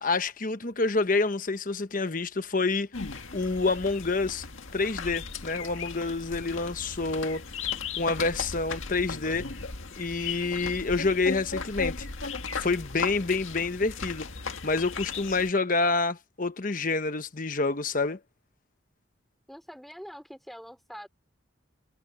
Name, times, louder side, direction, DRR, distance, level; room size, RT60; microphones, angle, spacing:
voice 1, 0.0-2.9 3.3-4.4 4.7-7.4 8.0-9.5 10.0-12.1 12.5-14.3 14.6-18.2, left 3 dB, 40° left, 1.0 m, -28 dB
sound 1, 2.9-15.5, left 4 dB, 80° left, 1.9 m, -36 dB
voice 2, 19.5-21.1, equal, ahead, 3.7 m, -44 dB
head